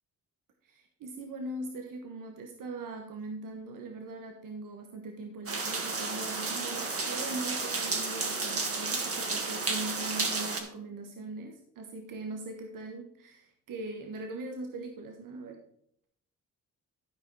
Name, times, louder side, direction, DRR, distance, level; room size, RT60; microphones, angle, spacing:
voice 1, 0.6-15.6, right 2 dB, 75° right, 3 dB, 1.4 m, -41 dB
sound 1, 5.5-10.6, right 3 dB, 45° right, 2.0 m, -32 dB
12.5 x 5.0 x 4.8 m, 0.70 s
cardioid pair, 90°, 33 cm